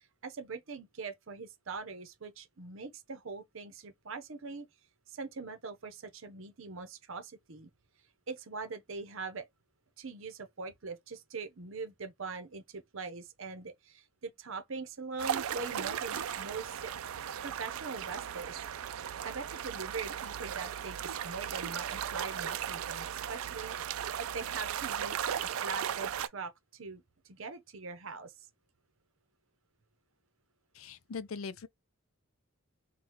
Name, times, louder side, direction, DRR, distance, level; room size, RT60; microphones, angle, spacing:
voice 1, 0.2-4.7 5.1-7.7 8.3-9.4 10.0-16.9 17.4-18.6 19.2-27.0 27.3-28.3, right 4 dB, 70° right, 0.8 m, -42 dB
sound 1, 15.2-26.3, right 9 dB, 85° right, 0.4 m, -37 dB
voice 2, 30.7-31.7, left 5 dB, 75° left, 0.5 m, -41 dB
3.9 x 2.3 x 2.9 m
head